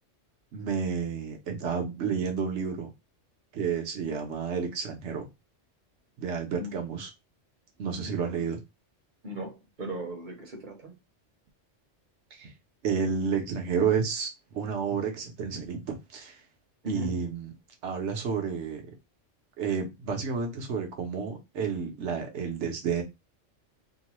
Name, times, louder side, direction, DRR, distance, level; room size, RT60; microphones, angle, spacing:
voice 1, 0.5-2.9 3.5-5.3 6.2-7.1 7.8-8.6 12.3-12.5 12.8-14.3 14.5-16.4 16.9-17.5 17.8-18.8 19.6-23.0, right 6 dB, 70° right, 1.0 m, -30 dB
voice 2, 9.2-10.9 16.8-17.2, right 1 dB, 45° right, 0.9 m, -38 dB
3.0 x 2.1 x 3.0 m
omnidirectional pair, 1.3 m